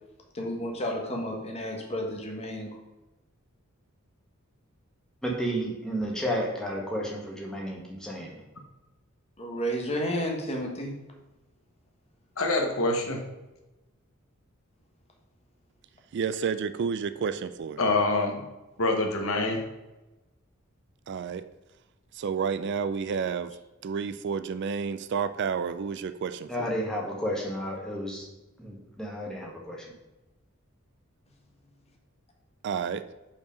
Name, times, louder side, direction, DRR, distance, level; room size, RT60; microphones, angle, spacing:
voice 1, 0.3-2.8 9.4-11.0, equal, 30° left, 1 dB, 1.3 m, -32 dB
voice 2, 5.2-8.4 26.5-28.2 28.6-29.8, equal, 5° left, -3 dB, 1.5 m, -32 dB
voice 3, 12.4-13.2 17.8-18.5 18.8-19.6, left 2 dB, 70° left, 3 dB, 1.2 m, -25 dB
voice 4, 16.1-17.8 21.1-21.4 22.1-23.5 23.8-26.7 32.6-33.0, right 6 dB, 55° right, 13 dB, 0.3 m, -30 dB
5.6 x 4.6 x 5.1 m, 1.0 s
head